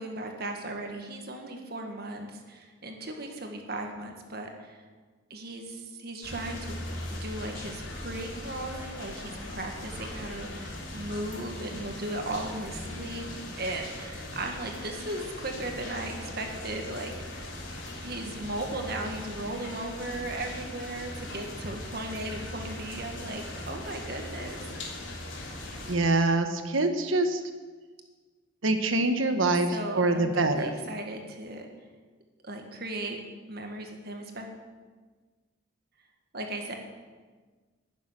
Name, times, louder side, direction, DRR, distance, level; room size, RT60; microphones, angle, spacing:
voice 1, 0.0-4.8 5.3-6.8 7.1-13.3 13.6-17.6 18.0-25.0 29.7-31.7 32.4-33.2 33.5-34.5 36.3-36.7, right 2 dB, 50° right, 3 dB, 1.7 m, -37 dB
sound 1, 6.2-26.0, left 1 dB, 75° left, 3.4 m, -39 dB
voice 2, 25.8-27.4 28.6-30.7, right 2 dB, 90° right, 7 dB, 1.3 m, -25 dB
12.5 x 7.3 x 10.0 m, 1.4 s
head